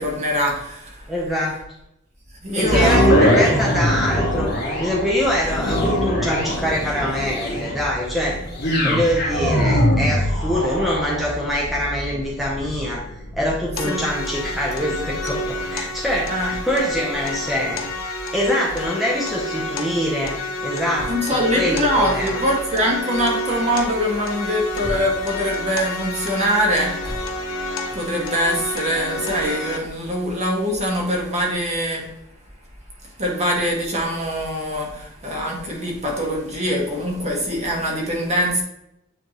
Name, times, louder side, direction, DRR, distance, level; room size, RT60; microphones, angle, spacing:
voice 1, 0.0-1.0 2.4-3.2 13.8-14.0 16.3-16.5 21.1-27.2 27.9-32.0 33.2-38.6, equal, 35° right, -1 dB, 1.7 m, -23 dB
voice 2, 1.1-1.6 2.6-4.5 4.8-8.4 8.8-13.0 13.4-17.8 18.3-20.3 20.6-22.4, equal, ahead, -5 dB, 1.0 m, -24 dB
sound 1, 2.6-16.8 17.3-17.4, equal, 50° left, 1.8 m, -22 dB
sound 2, 13.8-29.8, left 2 dB, 85° left, 0.9 m, -30 dB
9.1 x 3.5 x 3.1 m, 0.81 s
head